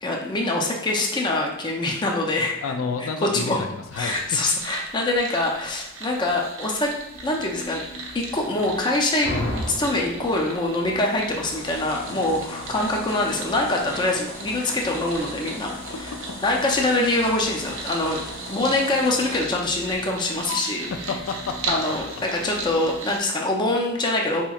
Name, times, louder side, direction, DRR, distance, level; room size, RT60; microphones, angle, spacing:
voice 1, 0.0-2.5 3.0-3.1 3.3-3.6 4.0-6.9 7.2-7.8 8.1-9.3 9.7-15.7 16.4-18.2 18.5-20.9 21.7-22.1 22.3-24.5, left 2 dB, 20° left, 0 dB, 0.4 m, -24 dB
voice 2, 2.6-4.4 12.1-12.2 16.1-16.2 16.8-16.9 20.9-21.6 22.1-22.2, left 5 dB, 85° left, 6 dB, 0.4 m, -30 dB
sound 1, 3.9-23.3, right 3 dB, 70° right, 0.7 m, -38 dB
sound 2, 7.1-23.0, left 2 dB, 50° left, 1.0 m, -44 dB
sound 3, 9.2-10.4 11.4-19.4 20.5-20.6, left 1 dB, 70° left, 1.4 m, -36 dB
4.1 x 2.9 x 2.3 m, 0.86 s
head